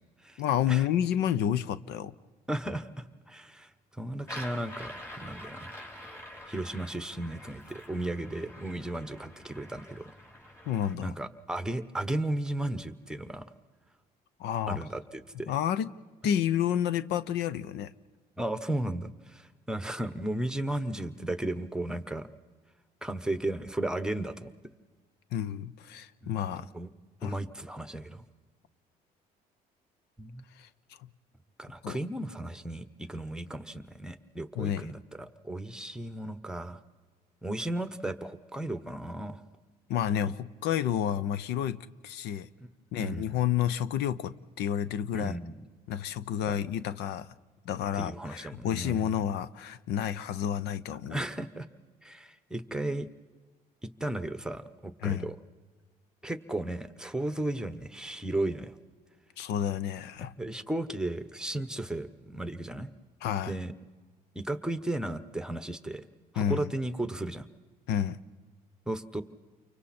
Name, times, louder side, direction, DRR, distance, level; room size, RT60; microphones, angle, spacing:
voice 1, 0.4-2.1 10.7-11.1 14.4-14.8 15.5-15.9 16.2-17.9 25.3-26.7 27.2-27.3 30.6-30.7 31.8-32.0 34.6-34.9 39.9-42.5 42.9-44.3 44.6-45.3 45.9-47.3 47.7-51.2 55.0-55.3 59.4-60.3 63.2-63.5 66.4-66.7 67.9-68.2, left 10 dB, 85° left, 0.7 m, -30 dB
voice 2, 2.5-5.7 6.5-10.1 11.0-13.5 14.7-15.5 18.4-22.3 23.0-24.5 26.2-26.9 27.2-28.2 30.2-30.4 31.6-36.8 37.4-39.4 43.0-43.4 45.1-45.6 46.5-46.6 47.9-49.1 51.1-51.7 52.0-53.1 53.8-55.4 56.2-58.8 60.4-62.9 63.5-63.7 64.3-66.0 66.3-67.5 68.9-69.2, right 1 dB, 5° right, 1.0 m, -35 dB
sound 1, 4.2-10.9, left 1 dB, 15° left, 4.6 m, -46 dB
29.5 x 24.0 x 4.3 m
cardioid pair, 110°, 17 cm